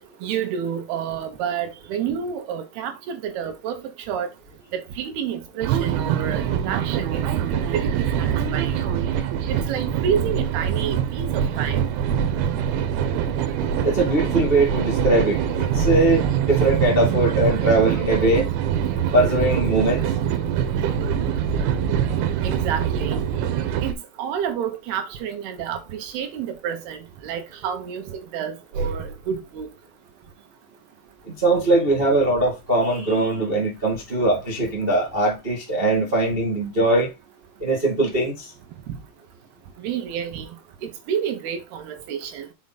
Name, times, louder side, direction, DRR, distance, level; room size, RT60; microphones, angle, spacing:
voice 1, 0.2-4.3 4.7-8.9 9.5-11.8 22.4-23.3 23.8-29.7 38.9-39.0 39.8-40.5 40.8-42.5, right 8 dB, 70° right, 3.1 m, -29 dB
sound 1, 5.6-23.9, right 9 dB, 90° right, 3.4 m, -24 dB
voice 2, 13.8-18.5 19.1-20.0 31.2-37.1 37.6-38.5, right 2 dB, 35° right, 0.9 m, -21 dB
7.1 x 4.8 x 4.2 m
omnidirectional pair, 5.0 m